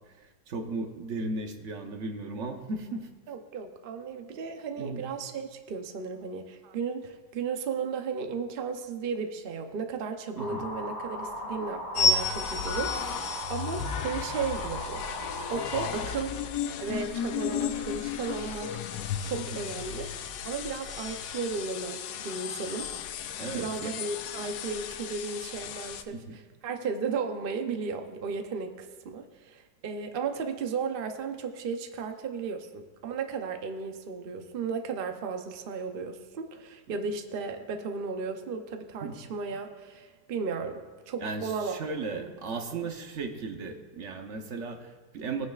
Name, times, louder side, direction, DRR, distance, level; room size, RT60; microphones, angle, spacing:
voice 1, 0.5-3.1 4.8-5.0 10.4-10.7 19.4-19.6 23.4-23.9 26.1-26.2 36.9-37.0 39.0-39.2 41.2-45.5, right 3 dB, 50° right, 5 dB, 1.0 m, -36 dB
voice 2, 3.3-15.0 15.5-16.4 16.8-18.8 19.2-20.1 20.4-22.9 23.5-41.8 42.1-42.3 42.7-42.9, right 5 dB, 70° right, 5 dB, 0.5 m, -35 dB
sound 1, 10.4-15.9, equal, 45° left, 2.2 m, -38 dB
sound 2, 11.9-26.0, left 5 dB, 90° left, 1.3 m, -33 dB
19.0 x 9.4 x 2.4 m, 1.3 s
omnidirectional pair, 1.9 m